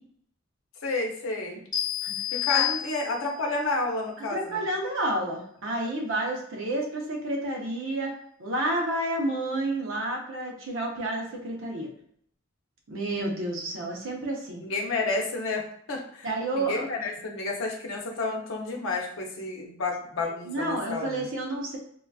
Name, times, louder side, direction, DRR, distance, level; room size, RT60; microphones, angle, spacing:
voice 1, 0.8-1.6 2.3-4.6 14.6-16.3 16.5-21.3, left 3 dB, 75° left, 1 dB, 0.8 m, -30 dB
sound 1, 1.7-3.4, left 13 dB, 20° left, 0.7 m, -29 dB
voice 2, 2.0-2.7 4.3-8.1 8.4-11.9 12.9-14.6 16.2-16.8 20.2-21.8, right 1 dB, 70° right, 0 dB, 0.8 m, -30 dB
3.9 x 2.4 x 2.3 m, 0.66 s
head